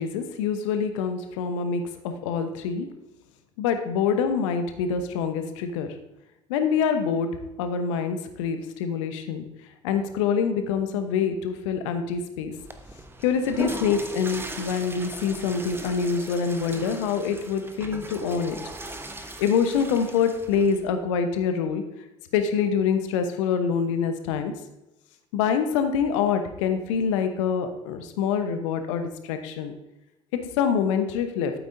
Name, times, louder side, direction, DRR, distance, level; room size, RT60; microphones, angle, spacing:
voice 1, 0.0-2.9 3.6-5.9 6.5-7.3 7.6-9.4 9.8-12.5 13.2-18.6 19.4-21.8 22.3-24.5 25.3-29.7 30.6-31.5, left 6 dB, 70° left, 7 dB, 1.0 m, -25 dB
Water / Toilet flush, 12.5-20.9, right 2 dB, 15° right, 1.0 m, -38 dB
12.0 x 8.9 x 2.6 m, 0.98 s
figure-of-eight pair, 60°, 17 cm